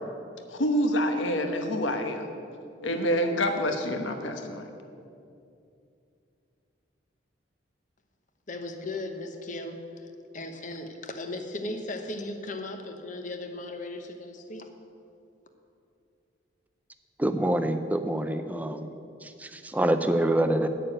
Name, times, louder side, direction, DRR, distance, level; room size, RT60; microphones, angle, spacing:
voice 1, 0.5-2.3 2.8-4.6, equal, 75° left, 5 dB, 1.1 m, -27 dB
voice 2, 8.5-14.7, left 2 dB, 40° left, 6 dB, 0.9 m, -37 dB
voice 3, 17.2-18.9 19.2-20.7, right 1 dB, 10° right, 9 dB, 0.4 m, -26 dB
8.8 x 6.8 x 8.7 m, 2.6 s
head